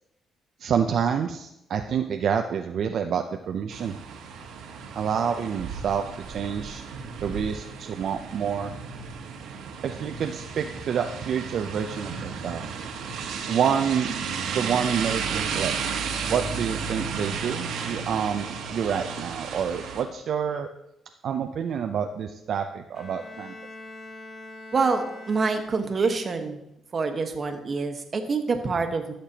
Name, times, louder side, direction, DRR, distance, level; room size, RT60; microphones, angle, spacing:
voice 1, 0.6-4.0 5.0-6.8 7.2-8.8 9.8-12.6 13.5-14.1 14.5-15.7 16.2-20.7 21.2-23.5, right 7 dB, 65° right, 5 dB, 0.5 m, -28 dB
sound 1, 3.7-20.0, right 6 dB, 85° right, 1.3 m, -33 dB
Bowed string instrument, 22.9-26.2, left 2 dB, 45° left, 3.8 m, -44 dB
voice 2, 24.7-26.6 26.9-29.1, right 4 dB, 40° right, 5 dB, 1.2 m, -26 dB
13.5 x 6.7 x 2.9 m, 0.83 s
cardioid pair, 90°, 0 cm